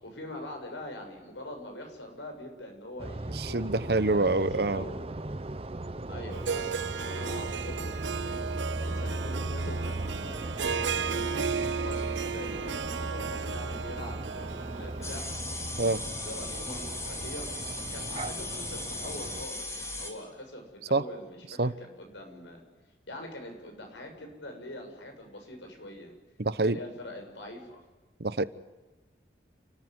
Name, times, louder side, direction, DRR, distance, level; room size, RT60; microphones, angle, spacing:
voice 1, 0.0-4.3 4.6-5.0 6.1-8.4 8.8-11.3 11.8-15.3 16.3-17.5 17.9-22.6 23.1-26.1 26.6-27.8, left 1 dB, 90° left, 3 dB, 6.9 m, -43 dB
sound 1, 3.0-19.5, right 2 dB, 30° right, 0.7 m, -37 dB
voice 2, 3.3-4.8 15.8-16.0 20.9-21.0 21.6-21.7 26.4-26.8 28.2-28.4, right 2 dB, 60° right, 15 dB, 1.0 m, -26 dB
Harp, 6.3-15.3, right 6 dB, 85° right, 0.8 m, -34 dB
sound 2, 15.0-20.1, left 2 dB, 15° left, 3.2 m, -37 dB
29.5 x 14.5 x 9.7 m, 1.2 s
head